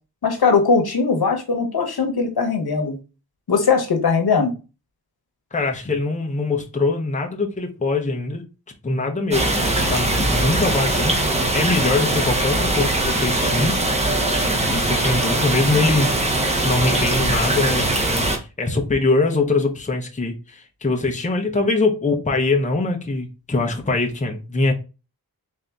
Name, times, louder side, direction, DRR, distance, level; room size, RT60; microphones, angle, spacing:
voice 1, 0.2-2.9 3.5-4.5, left 5 dB, 80° left, 1.0 m, -19 dB
voice 2, 5.5-8.4 8.8-13.7 14.4-24.7, left 3 dB, 20° left, 0.7 m, -23 dB
sound 1, 9.3-18.4, right 1 dB, 20° right, 0.9 m, -21 dB
3.8 x 2.8 x 3.4 m
wide cardioid pair, 90°, 37 cm